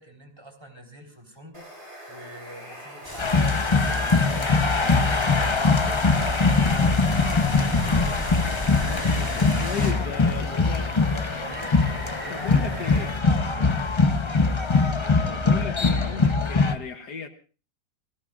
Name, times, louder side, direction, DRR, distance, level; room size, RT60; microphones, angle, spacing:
voice 1, 0.0-6.7 7.0-8.2 10.1-13.9 14.5-15.2, right 1 dB, 15° right, 3 dB, 3.8 m, -46 dB
Water, 1.5-13.2, right 1 dB, 35° right, 5.8 m, -42 dB
sound 1, 3.0-9.9, left 1 dB, 10° left, 3.0 m, -36 dB
sound 2, 3.2-16.8, left 4 dB, 30° left, 0.5 m, -22 dB
voice 2, 8.8-10.9 12.3-13.1 15.3-17.3, left 6 dB, 65° left, 7 dB, 1.6 m, -35 dB
27.5 x 19.0 x 2.5 m, 0.36 s
omnidirectional pair, 1.9 m